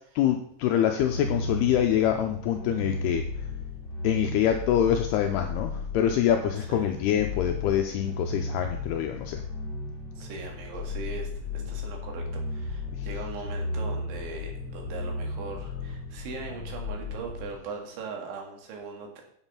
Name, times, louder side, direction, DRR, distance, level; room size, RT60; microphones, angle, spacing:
voice 1, 0.2-3.2 4.0-9.4, left 10 dB, 85° left, 5 dB, 2.4 m, -25 dB
sound 1, 1.0-17.5, left 3 dB, 35° left, 1.8 m, -35 dB
voice 2, 10.2-19.2, right 4 dB, 80° right, 1 dB, 4.4 m, -40 dB
8.8 x 7.2 x 5.7 m, 0.67 s
omnidirectional pair, 5.3 m